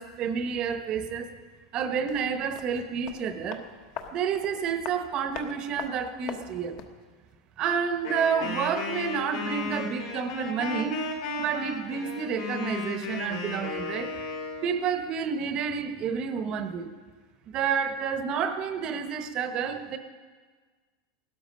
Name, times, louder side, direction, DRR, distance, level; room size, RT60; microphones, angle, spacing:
voice 1, 0.0-1.4 1.7-3.6 4.1-6.8 7.6-11.0 11.4-14.1 14.6-16.9 17.5-20.0, right 7 dB, 30° right, 8 dB, 0.9 m, -29 dB
sound 1, 2.0-7.0 7.3-7.4, left 7 dB, 45° left, 1.2 m, -42 dB
Wind instrument woodwind instrument, 8.0-14.7, left 3 dB, 70° left, 3.4 m, -34 dB
16.5 x 13.0 x 5.2 m, 1.5 s
supercardioid pair, 170°, 3 cm